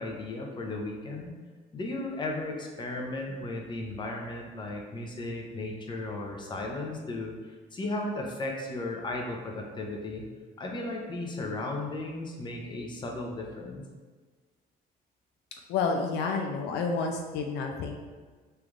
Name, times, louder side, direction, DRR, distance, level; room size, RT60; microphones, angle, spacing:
voice 1, 0.0-1.3 1.7-10.2 10.6-13.8, left 2 dB, 25° left, 0 dB, 0.6 m, -35 dB
voice 2, 15.7-18.0, left 4 dB, 80° left, 3 dB, 0.4 m, -29 dB
3.2 x 2.5 x 3.5 m, 1.4 s
cardioid pair, 110°, 17 cm